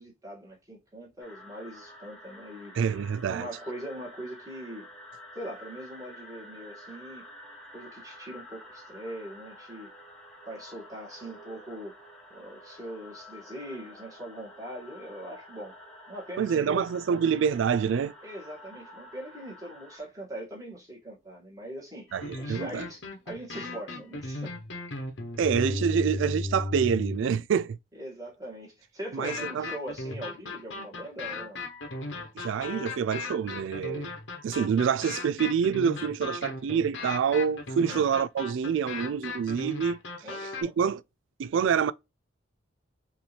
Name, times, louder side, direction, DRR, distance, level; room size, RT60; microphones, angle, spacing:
voice 1, 0.0-2.8 3.3-4.9 5.3-7.3 7.7-9.9 10.5-12.0 12.3-15.8 16.1-16.8 18.2-22.1 22.4-24.6 27.9-31.7 37.8-38.1 40.2-40.7, right 1 dB, 15° right, 2.0 m, -41 dB
sound 1, 1.2-20.0, left 1 dB, 5° left, 1.3 m, -49 dB
voice 2, 2.8-3.5 16.4-18.1 22.1-22.9 25.4-27.8 29.1-29.7 32.4-34.1 34.4-40.0 40.4-41.0 41.4-41.9, right 7 dB, 75° right, 0.3 m, -27 dB
sound 2, 22.1-27.4 29.2-40.6, left 2 dB, 70° left, 1.1 m, -36 dB
5.2 x 2.8 x 3.3 m
head